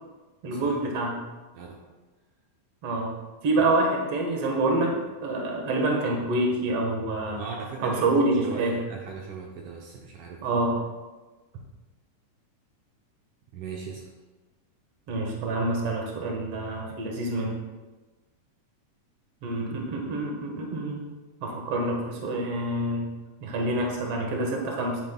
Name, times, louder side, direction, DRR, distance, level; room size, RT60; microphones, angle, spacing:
voice 1, 0.4-1.2 2.8-3.1 3.4-7.4 7.8-8.8 10.4-10.8 15.1-17.6 19.4-21.1 21.4-23.1 23.4-25.0, right 2 dB, 55° right, 0 dB, 2.1 m, -27 dB
voice 2, 7.4-10.6 13.5-14.0, right 5 dB, 75° right, -2 dB, 2.3 m, -38 dB
10.5 x 9.3 x 2.3 m, 1.2 s
omnidirectional pair, 3.8 m